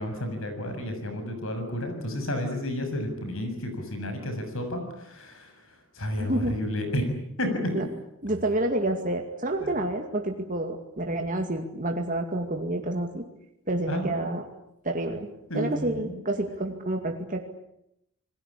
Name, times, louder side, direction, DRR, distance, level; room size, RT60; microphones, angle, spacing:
voice 1, 0.0-7.7 9.6-9.7 13.9-14.2 15.5-16.2, equal, 65° left, 7 dB, 7.0 m, -31 dB
voice 2, 6.2-6.5 7.7-7.8 8.2-13.2 13.7-14.4 14.8-15.3 15.5-17.4, right 1 dB, 35° right, 3 dB, 2.4 m, -29 dB
28.5 x 20.5 x 8.6 m, 0.80 s
head